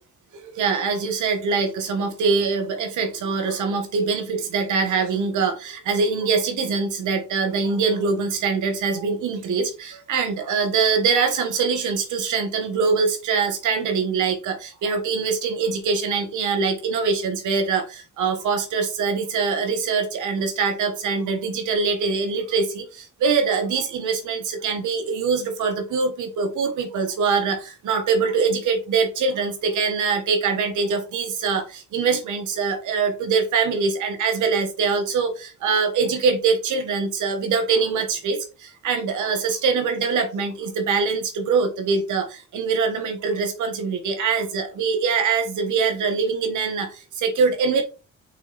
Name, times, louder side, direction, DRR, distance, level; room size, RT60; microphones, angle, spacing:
voice 1, 0.5-47.8, right 5 dB, 80° right, 1.7 m, -23 dB
6.1 x 3.9 x 4.2 m
cardioid pair, 90°, 30 cm